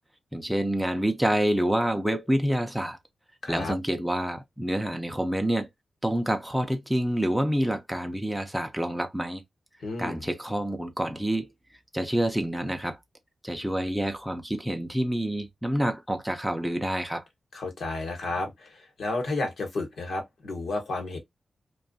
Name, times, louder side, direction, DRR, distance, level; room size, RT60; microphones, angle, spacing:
voice 1, 0.3-3.0 3.5-5.7 6.0-9.4 10.0-11.5 11.9-13.0 13.4-17.2, equal, ahead, 0.5 m, -27 dB
voice 2, 3.4-3.7 9.8-10.2 17.5-21.2, left 2 dB, 75° left, 1.1 m, -32 dB
2.6 x 2.3 x 2.5 m
wide cardioid pair, 115°, 0 cm